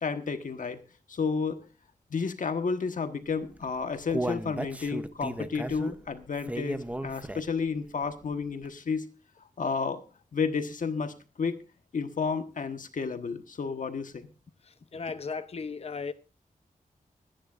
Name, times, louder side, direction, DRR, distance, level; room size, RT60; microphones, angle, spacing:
voice 1, 0.0-0.8 1.1-1.6 2.1-9.1 9.6-10.0 10.3-11.6 11.9-14.3, left 5 dB, 65° left, 1.3 m, -31 dB
Human voice, 3.5-7.7 8.1-8.2 8.6-8.7, right 1 dB, 10° right, 0.8 m, -35 dB
voice 2, 14.9-16.1, left 5 dB, 45° left, 0.7 m, -35 dB
23.5 x 10.0 x 2.5 m
wide cardioid pair, 150°, 15 cm